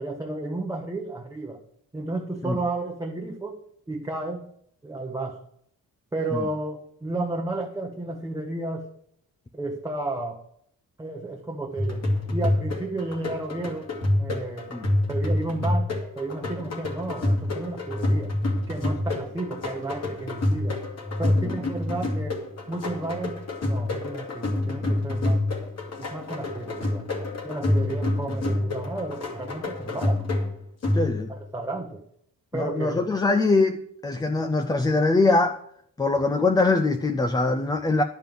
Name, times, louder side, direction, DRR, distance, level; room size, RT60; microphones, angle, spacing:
voice 1, 0.0-1.6 1.9-3.6 3.9-4.5 4.8-5.4 6.1-8.9 9.5-10.4 11.0-12.0 12.3-13.9 14.2-14.7 15.1-18.3 18.7-20.8 21.2-22.4 22.7-25.5 26.0-27.1 27.4-30.2 31.3-32.0 32.5-33.0, right 2 dB, 10° right, 0.8 m, -32 dB
sound 1, 11.8-31.4, left 2 dB, 45° left, 2.2 m, -27 dB
voice 2, 30.9-31.3 32.5-35.6 36.0-38.0, left 3 dB, 10° left, 0.3 m, -23 dB
10.5 x 5.3 x 7.5 m
wide cardioid pair, 150°, 35 cm